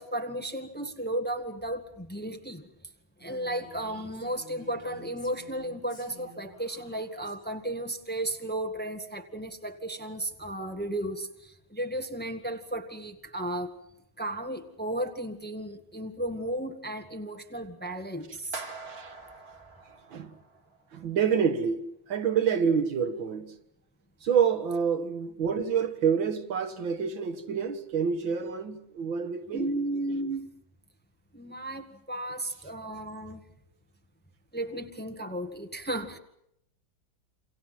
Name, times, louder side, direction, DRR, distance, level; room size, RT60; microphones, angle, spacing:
voice 1, 0.0-2.6 3.2-13.8 14.2-18.6 29.5-30.5 31.3-33.4 34.5-36.2, right 1 dB, 5° left, 1.5 m, -34 dB
Female speech woman speaking, 3.2-7.4, equal, 50° left, 8.5 m, -52 dB
sound 1, 18.5-20.8, right 3 dB, 30° right, 2.6 m, -43 dB
voice 2, 20.9-21.8 22.1-23.5 24.2-29.7, right 7 dB, 75° right, 2.2 m, -27 dB
28.5 x 26.5 x 5.9 m
omnidirectional pair, 2.1 m